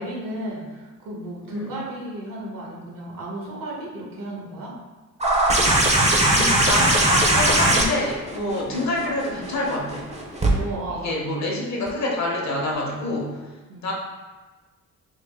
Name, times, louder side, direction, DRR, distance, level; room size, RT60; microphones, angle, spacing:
voice 1, 0.0-4.7 10.5-11.2 13.7-13.9, right 1 dB, 75° right, -3 dB, 1.1 m, -33 dB
sound 1, 5.2-10.5 11.9-12.0, right 1 dB, 20° right, 0.6 m, -20 dB
voice 2, 6.0-10.0 10.9-13.4 13.8-13.9, left 2 dB, 55° left, -1 dB, 0.9 m, -27 dB
3.7 x 2.4 x 3.5 m, 1.3 s
cardioid pair, 100°, 34 cm